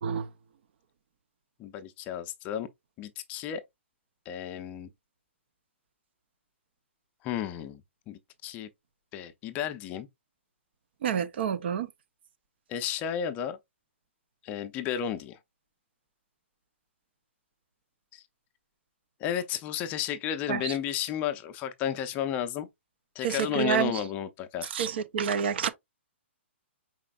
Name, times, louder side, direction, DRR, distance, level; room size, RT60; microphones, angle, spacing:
voice 1, 1.6-2.7 3.0-3.6 4.3-4.9 7.2-7.8 8.1-8.7 9.1-10.1 12.7-13.6 14.4-15.4 18.1-18.2 19.2-22.7 23.1-24.7, left 10 dB, 20° left, 0.5 m, -33 dB
voice 2, 11.0-11.9 20.5-20.7 23.2-23.9 24.7-25.7, right 7 dB, 55° right, 0.6 m, -28 dB
5.0 x 4.2 x 2.3 m
hypercardioid pair, 155°, 7 cm